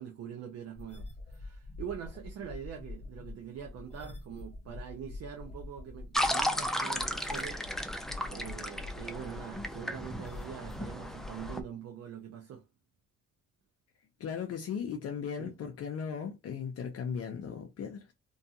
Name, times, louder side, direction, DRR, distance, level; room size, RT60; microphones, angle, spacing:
voice 1, 0.0-12.6 15.4-15.5, right 8 dB, 60° right, 0.6 m, -44 dB
sound 1, 0.8-11.6, left 2 dB, 20° left, 1.0 m, -45 dB
sound 2, 6.1-11.6, equal, ahead, 0.4 m, -34 dB
voice 2, 14.2-18.1, left 7 dB, 55° left, 0.6 m, -37 dB
2.6 x 2.4 x 2.7 m
cardioid pair, 90°, 30 cm